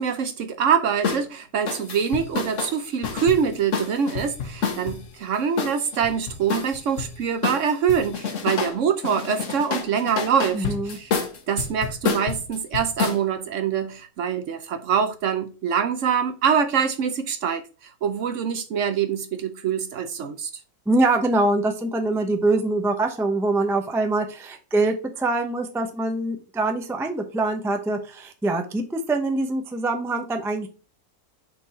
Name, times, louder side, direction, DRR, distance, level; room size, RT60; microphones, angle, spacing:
voice 1, 0.0-11.1 11.5-20.5, right 7 dB, 65° right, 0.9 m, -24 dB
sound 1, 1.0-1.2 1.7-5.0 5.6-7.1 7.4-8.8 9.0-13.2, left 5 dB, 60° left, 1.3 m, -28 dB
voice 2, 10.5-11.0 20.9-30.7, right 2 dB, 5° right, 0.4 m, -24 dB
5.7 x 4.0 x 4.2 m
omnidirectional pair, 1.6 m